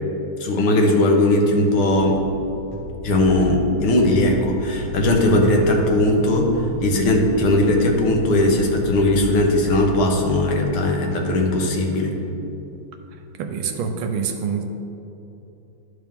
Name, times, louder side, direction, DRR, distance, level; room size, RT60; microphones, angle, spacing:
voice 1, 0.4-2.2 3.0-12.2, left 1 dB, 85° left, 1 dB, 1.9 m, -18 dB
sound 1, 2.0-9.9, left 1 dB, 10° right, 1.4 m, -35 dB
voice 2, 13.4-14.7, right 6 dB, 80° right, 5 dB, 1.4 m, -26 dB
12.0 x 4.4 x 3.6 m, 3.0 s
omnidirectional pair, 2.3 m